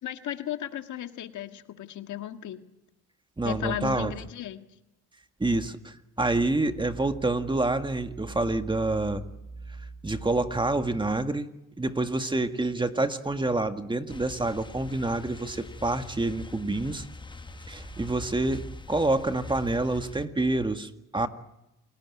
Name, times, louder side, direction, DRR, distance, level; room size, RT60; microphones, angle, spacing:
voice 1, 0.0-2.7 3.4-4.7, left 11 dB, 75° left, 7 dB, 1.8 m, -35 dB
voice 2, 3.4-4.1 5.4-9.2 10.0-11.5 11.8-17.1 17.7-21.3, right 2 dB, 15° right, 8 dB, 1.8 m, -27 dB
sound 1, 14.1-20.3, left 3 dB, 15° left, 1.1 m, -44 dB
28.5 x 18.5 x 9.7 m, 0.91 s
cardioid pair, 90°, 30 cm